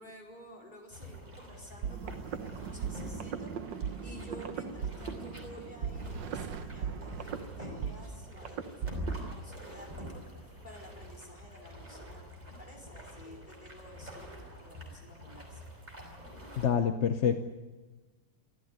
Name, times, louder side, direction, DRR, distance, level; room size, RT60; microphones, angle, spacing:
voice 1, 0.0-15.6, equal, 25° left, 0 dB, 4.8 m, -52 dB
sound 1, 0.9-16.7, equal, 20° right, 5.2 m, -46 dB
sound 2, 1.8-9.4, right 7 dB, 75° right, 1.7 m, -38 dB
voice 2, 16.6-17.4, left 7 dB, 50° left, 9 dB, 1.0 m, -27 dB
24.5 x 14.5 x 9.6 m, 1.3 s
omnidirectional pair, 2.0 m